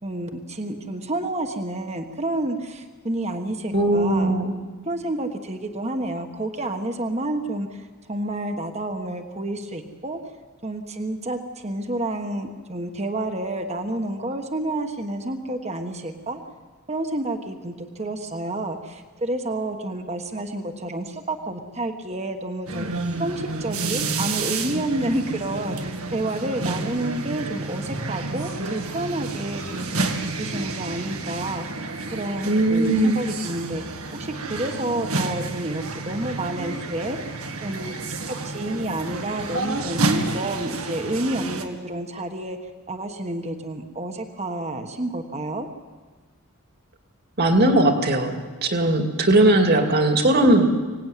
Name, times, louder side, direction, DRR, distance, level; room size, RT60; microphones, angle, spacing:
voice 1, 0.0-4.4 4.8-10.2 10.6-16.4 16.9-29.9 30.3-33.8 34.1-37.3 37.6-37.9 38.3-42.6 42.9-45.7, right 1 dB, 30° right, 6 dB, 1.4 m, -29 dB
voice 2, 3.7-4.5 32.4-33.2 47.4-50.7, right 1 dB, 45° right, 5 dB, 2.4 m, -19 dB
sound 1, 22.7-41.6, right 3 dB, 80° right, 2.0 m, -30 dB
24.5 x 18.0 x 9.2 m, 1.4 s
head